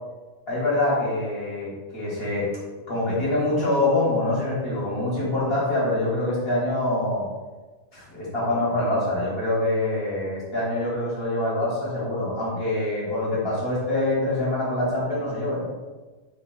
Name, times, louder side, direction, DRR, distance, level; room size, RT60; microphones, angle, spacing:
voice 1, 0.5-2.5 2.9-7.3 7.9-15.6, left 1 dB, 50° left, -8 dB, 1.7 m, -25 dB
3.7 x 2.4 x 3.9 m, 1.3 s
omnidirectional pair, 1.4 m